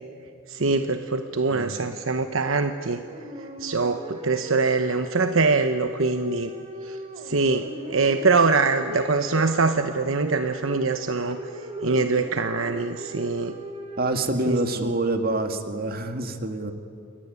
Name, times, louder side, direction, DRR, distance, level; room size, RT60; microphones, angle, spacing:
voice 1, 0.5-3.0 3.6-6.5 6.8-7.0 7.2-11.4 11.8-13.6 14.5-14.6, right 4 dB, 70° right, 8 dB, 1.0 m, -23 dB
sound 1, 3.1-14.1, left 1 dB, 30° right, 3.0 m, -38 dB
voice 2, 14.0-16.7, right 2 dB, 45° right, 6 dB, 2.2 m, -26 dB
28.5 x 21.5 x 9.7 m, 2.4 s
head